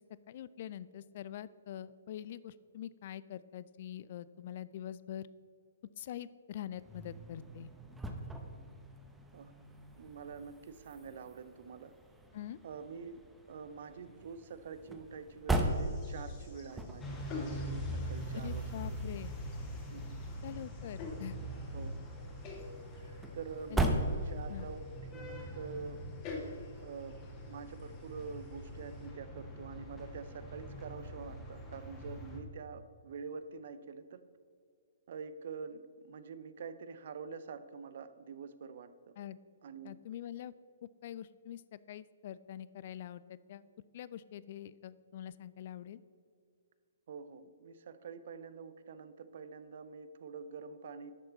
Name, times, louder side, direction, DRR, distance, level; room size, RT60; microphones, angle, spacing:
voice 1, 0.3-5.3 6.0-7.7 12.3-12.6 18.3-19.3 20.4-21.4 23.7-24.0 24.5-24.7 39.2-39.4 39.8-40.5 40.8-43.6 43.9-46.0, left 11 dB, 50° left, 17 dB, 0.4 m, -44 dB
sound 1, 6.7-24.8, right 1 dB, 5° right, 0.9 m, -40 dB
voice 2, 10.0-11.9 12.6-13.2 13.5-19.0 19.9-20.2 21.7-21.9 23.0-24.8 25.1-26.0 26.8-34.3 35.1-39.1 39.6-40.0 47.1-51.1, right 5 dB, 55° right, 13 dB, 0.6 m, -46 dB
sound 2, 15.6-29.1, left 3 dB, 35° left, 2.1 m, -50 dB
sound 3, 17.0-32.4, equal, 15° left, 1.6 m, -43 dB
11.0 x 6.6 x 4.0 m, 2.3 s
figure-of-eight pair, 125°, 0 cm